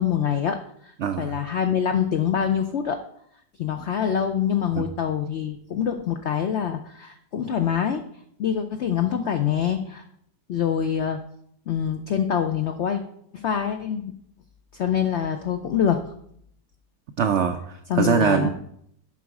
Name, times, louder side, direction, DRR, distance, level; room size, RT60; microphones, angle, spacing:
voice 1, 0.0-3.0 3.6-8.0 8.4-10.0 10.5-11.2 11.7-13.0 13.3-14.1 14.7-16.0 17.9-18.5, left 8 dB, 80° left, 7 dB, 0.6 m, -25 dB
voice 2, 1.0-1.3 4.8-4.9 17.2-18.5, right 7 dB, 85° right, 8 dB, 0.6 m, -22 dB
7.1 x 6.2 x 4.8 m, 0.70 s
omnidirectional pair, 1.8 m